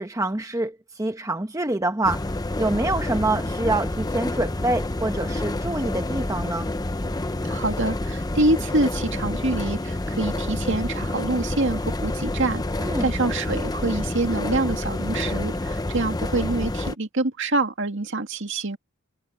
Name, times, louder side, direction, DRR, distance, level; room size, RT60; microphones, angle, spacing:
voice 1, 0.0-2.2 2.6-6.7 12.8-13.1, right 2 dB, 15° right, 1.0 m, -26 dB
sound 1, 2.0-16.9, left 2 dB, 20° left, 0.7 m, -28 dB
voice 2, 7.5-18.8, right 2 dB, 60° right, 2.3 m, -26 dB
head